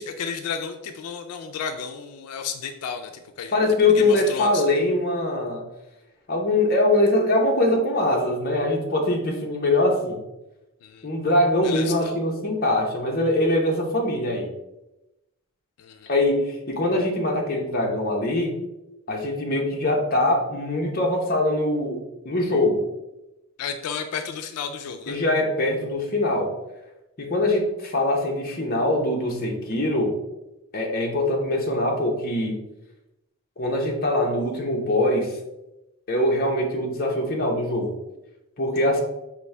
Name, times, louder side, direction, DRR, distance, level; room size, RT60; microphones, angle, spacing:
voice 1, 0.0-3.1 3.4-3.5 4.0-4.6 10.8-11.1 11.6-12.2 15.8-16.1 23.6-25.2, left 6 dB, 90° left, 7 dB, 0.4 m, -32 dB
voice 2, 3.5-5.7 6.3-10.2 11.0-14.5 16.1-18.5 19.1-22.8 25.1-26.5 27.2-30.2 30.7-32.6 33.6-35.3 36.1-37.9 38.6-39.0, left 1 dB, 40° left, 0 dB, 0.8 m, -23 dB
5.2 x 2.6 x 3.3 m, 0.96 s
head